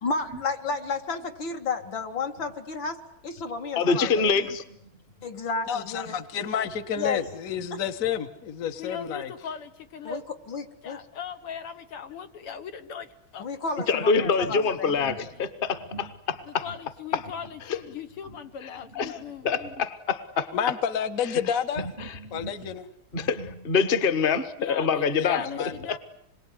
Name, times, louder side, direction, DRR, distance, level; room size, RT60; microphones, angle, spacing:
voice 1, 0.0-4.5 5.2-6.1 7.0-7.2 10.0-10.2 10.5-11.0 13.4-15.0, left 4 dB, 60° left, 6 dB, 2.7 m, -32 dB
voice 2, 3.7-4.6 13.9-16.6 17.1-17.2 18.9-20.5 22.0-22.5 23.1-25.4, left 5 dB, 30° left, 13 dB, 1.3 m, -25 dB
voice 3, 5.7-9.3 20.5-21.9 22.3-22.9 25.2-25.7, left 8 dB, 45° left, 10 dB, 1.4 m, -30 dB
voice 4, 8.7-10.2 10.8-13.5 14.9-15.0 16.5-19.5 24.6-26.0, left 7 dB, 80° left, 8 dB, 2.5 m, -39 dB
27.0 x 22.5 x 9.9 m, 0.75 s
omnidirectional pair, 2.4 m